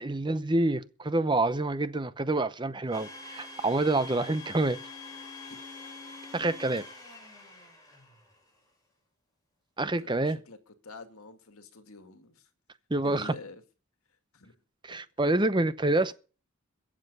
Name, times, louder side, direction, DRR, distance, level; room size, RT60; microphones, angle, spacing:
voice 1, 0.0-4.8 6.3-6.9 9.8-10.4 12.9-13.3 14.8-16.1, right 2 dB, 20° right, 0.7 m, -27 dB
Domestic sounds home sounds, 2.9-8.4, left 3 dB, 15° left, 6.3 m, -45 dB
voice 2, 10.0-12.5 13.0-13.6 14.3-14.6 14.9-15.0, left 3 dB, 75° left, 2.1 m, -48 dB
22.0 x 7.5 x 5.5 m
head